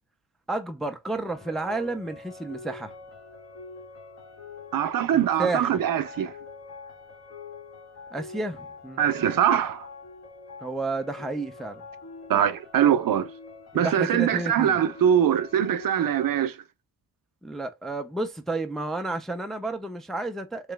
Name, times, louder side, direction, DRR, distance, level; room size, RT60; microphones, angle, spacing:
voice 1, 0.5-2.9 5.1-5.8 8.1-9.0 10.6-11.8 13.7-14.8 17.4-20.7, right 2 dB, ahead, 0.4 m, -31 dB
sound 1, 1.2-16.4, left 3 dB, 45° left, 1.8 m, -44 dB
voice 2, 4.7-6.3 9.0-9.9 12.3-13.3 13.7-16.6, right 9 dB, 60° right, 0.6 m, -23 dB
3.1 x 2.9 x 3.3 m
wide cardioid pair, 130°, 38 cm